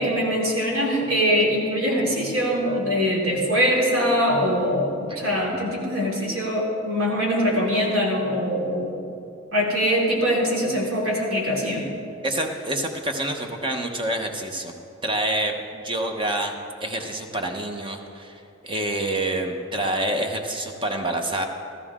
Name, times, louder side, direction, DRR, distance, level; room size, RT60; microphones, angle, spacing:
voice 1, 0.0-8.9 9.5-11.9, equal, 80° right, -3 dB, 2.9 m, -23 dB
voice 2, 12.2-14.7 15.0-16.5 16.8-21.5, right 1 dB, 25° right, 4 dB, 1.0 m, -27 dB
14.5 x 14.0 x 3.7 m, 2.5 s
head